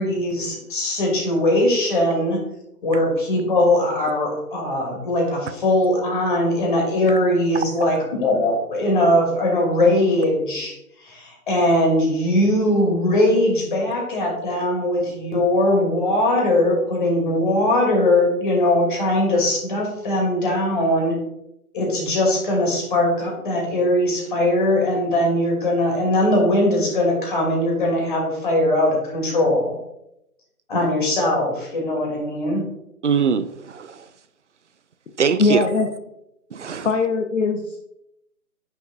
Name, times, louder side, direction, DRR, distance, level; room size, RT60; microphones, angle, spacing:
voice 1, 0.0-2.4 2.8-10.7 11.0-21.2 21.7-29.8 30.7-32.6, left 1 dB, 35° left, -1 dB, 2.3 m, -20 dB
voice 2, 33.0-34.1 35.2-35.7 36.5-36.9, right 6 dB, 50° right, 13 dB, 0.5 m, -22 dB
voice 3, 35.4-35.9 36.8-37.8, left 4 dB, 55° left, 5 dB, 0.8 m, -20 dB
9.6 x 6.2 x 2.3 m, 0.83 s
figure-of-eight pair, 150°, 45 cm